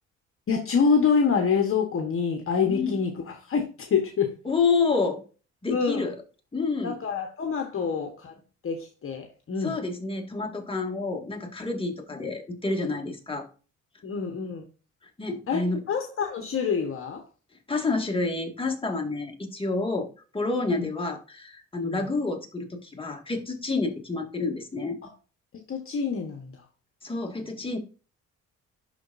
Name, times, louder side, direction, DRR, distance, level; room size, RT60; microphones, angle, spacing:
voice 1, 0.5-3.1 3.4-4.3 5.7-6.1 6.8-8.3 8.6-9.8 14.0-14.6 15.5-17.2 20.7-20.9 21.8-22.0 25.7-26.6, left 6 dB, 45° left, 3 dB, 1.3 m, -26 dB
voice 2, 2.7-3.0 4.5-5.2 5.6-6.2 6.5-7.0 9.6-13.5 15.2-15.8 17.7-20.1 20.3-25.0 27.0-27.8, left 3 dB, 15° left, 2 dB, 1.9 m, -28 dB
11.5 x 4.0 x 2.6 m, 0.36 s
cardioid pair, 90°, 30 cm